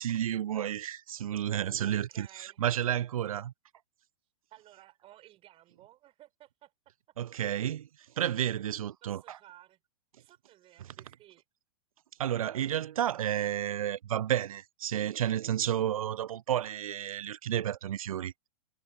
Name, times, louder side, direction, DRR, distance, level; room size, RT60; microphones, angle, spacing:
voice 1, 0.0-3.5 7.2-7.9 8.2-9.4 12.2-18.3, right 10 dB, 70° right, 0.5 m, -31 dB
voice 2, 1.9-2.6 4.5-6.7 9.0-9.8 10.2-11.4, right 14 dB, 30° right, 4.4 m, -56 dB
figure-of-eight pair, 105°, 18 cm